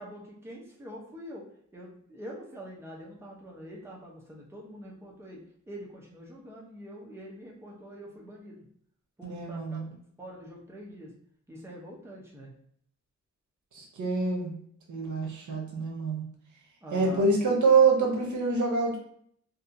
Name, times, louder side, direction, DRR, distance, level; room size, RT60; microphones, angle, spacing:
voice 1, 0.0-1.4 1.7-5.4 5.7-8.6 9.2-9.8 10.2-11.1 11.5-12.5 16.8-17.3, equal, 10° right, -3 dB, 0.6 m, -45 dB
voice 2, 9.2-9.9 13.7-14.6 14.9-16.2 16.9-19.0, right 4 dB, 75° right, 0 dB, 0.7 m, -25 dB
2.7 x 2.4 x 2.6 m, 0.64 s
wide cardioid pair, 95°, 30 cm